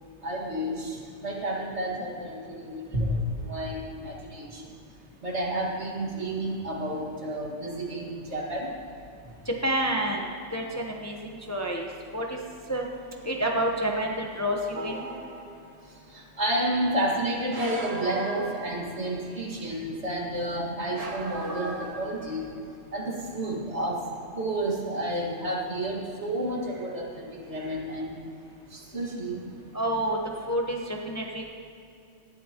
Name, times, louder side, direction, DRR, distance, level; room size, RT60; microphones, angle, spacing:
voice 1, 0.2-1.0 1.2-3.2 3.4-4.5 5.2-8.7 14.8-14.9 16.4-22.5 22.9-24.0 24.4-28.1 28.9-29.4, right 1 dB, 60° right, -2 dB, 2.2 m, -30 dB
voice 2, 9.5-10.2 10.5-12.4 12.7-12.9 13.2-15.1 29.7-30.2 30.5-31.4, right 1 dB, 15° left, 0 dB, 0.9 m, -29 dB
sound 1, 14.7-15.8 17.5-19.3 20.9-22.6, right 3 dB, 80° right, 1.6 m, -38 dB
18.5 x 12.5 x 3.0 m, 2.6 s
omnidirectional pair, 1.3 m